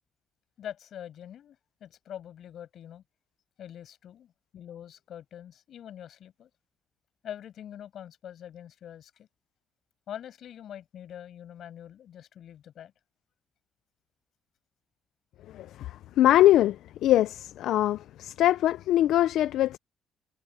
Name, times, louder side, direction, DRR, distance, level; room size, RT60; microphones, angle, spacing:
voice 1, 0.6-3.0 3.6-6.5 7.2-9.3 10.1-12.9, left 10 dB, 55° left, 6.8 m, -44 dB
voice 2, 15.5-19.8, left 13 dB, 75° left, 0.4 m, -23 dB
cardioid pair, 160°, 0 cm